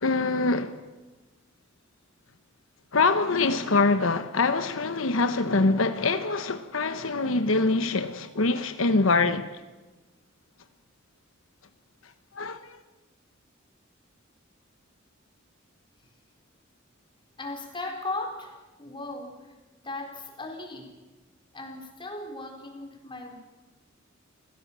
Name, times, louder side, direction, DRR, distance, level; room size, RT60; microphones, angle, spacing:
voice 1, 0.0-0.8 2.9-9.5 12.0-12.8, left 3 dB, 85° left, 1.1 m, -24 dB
voice 2, 17.4-19.5 19.8-21.0 21.5-23.4, left 2 dB, 25° left, 4.3 m, -37 dB
29.0 x 17.0 x 7.5 m
head